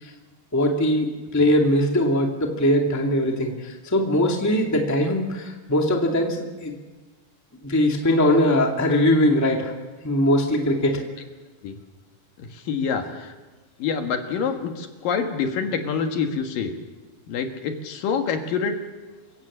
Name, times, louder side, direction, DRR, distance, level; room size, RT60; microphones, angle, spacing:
voice 1, 0.5-6.8 7.6-9.7 10.0-11.0, left 1 dB, 5° left, 1 dB, 1.5 m, -21 dB
voice 2, 12.4-13.3 13.8-16.7 17.3-18.8, left 6 dB, 65° left, 5 dB, 3.1 m, -26 dB
27.0 x 17.0 x 7.5 m, 1.3 s
omnidirectional pair, 4.4 m